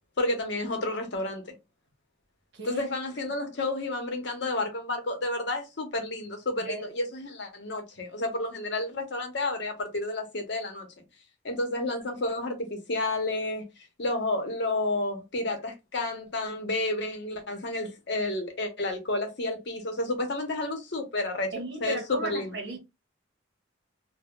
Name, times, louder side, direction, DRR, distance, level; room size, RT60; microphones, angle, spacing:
voice 1, 0.2-1.5 2.6-10.9 11.4-13.6 14.0-21.5 21.8-22.6, left 2 dB, 55° left, 0.8 m, -31 dB
voice 2, 2.5-2.8 6.6-6.8 21.5-22.8, right 3 dB, 55° right, 1.0 m, -35 dB
3.5 x 2.2 x 2.3 m
head